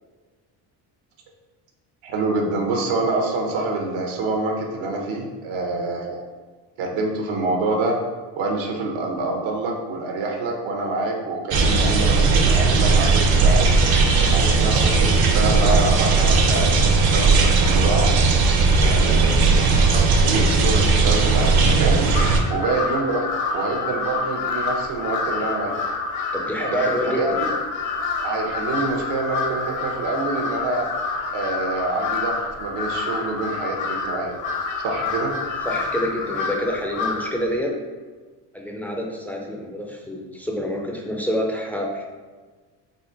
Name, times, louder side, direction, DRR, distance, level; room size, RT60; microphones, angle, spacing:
voice 1, 2.0-6.2 6.8-8.0 8.4-13.7 14.3-18.1 18.8-19.2 19.5-22.0 22.5-25.8 26.6-26.9 27.2-27.5 28.2-30.9 31.3-34.3 34.8-35.3, right 2 dB, 70° right, 1 dB, 0.9 m, -26 dB
sound 1, 11.5-22.4, right 4 dB, 45° right, 0.6 m, -17 dB
voice 2, 19.1-19.5 26.3-27.4 35.7-37.7 38.5-42.0, left 1 dB, 5° left, -1 dB, 0.3 m, -27 dB
Crow, 22.1-37.4, left 4 dB, 60° left, 0.8 m, -28 dB
3.9 x 2.1 x 3.9 m, 1.4 s
cardioid pair, 95°, 50 cm